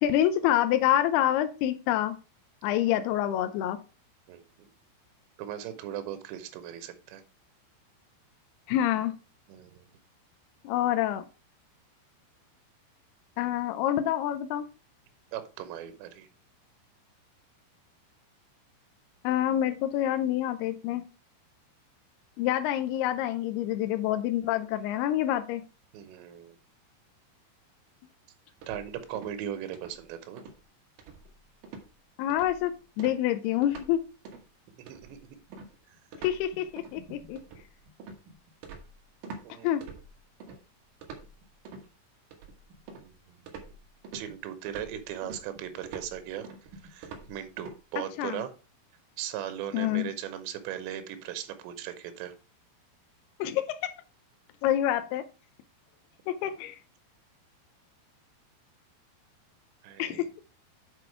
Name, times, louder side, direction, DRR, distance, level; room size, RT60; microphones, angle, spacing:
voice 1, 0.0-2.2 2.6-3.8 8.7-9.1 10.6-11.3 13.4-14.7 19.2-21.0 22.4-25.6 32.2-34.0 36.2-37.4 39.6-39.8 48.2-48.4 49.7-50.1 53.4-53.9 54.6-55.2 56.3-56.8 60.0-60.3, left 12 dB, 80° left, 9 dB, 2.3 m, -27 dB
voice 2, 4.3-4.7 5.4-7.2 9.5-9.8 15.3-16.3 25.9-26.6 28.7-30.4 34.8-35.2 39.4-39.7 43.0-43.1 44.1-46.5 46.8-48.5 49.2-52.3 59.8-60.3, right 10 dB, 85° right, 10 dB, 3.1 m, -38 dB
sound 1, 28.6-29.4 29.7-30.0 30.4-30.6 31.0-31.4 31.6-31.9 32.3-32.6 33.0-33.9 34.2-34.5 34.9-39.5 39.8-40.6 41.0-41.9 42.3-43.1 43.5-47.8, right 4 dB, 65° right, 2.3 m, -45 dB
7.8 x 4.9 x 4.7 m, 0.33 s
omnidirectional pair, 5.1 m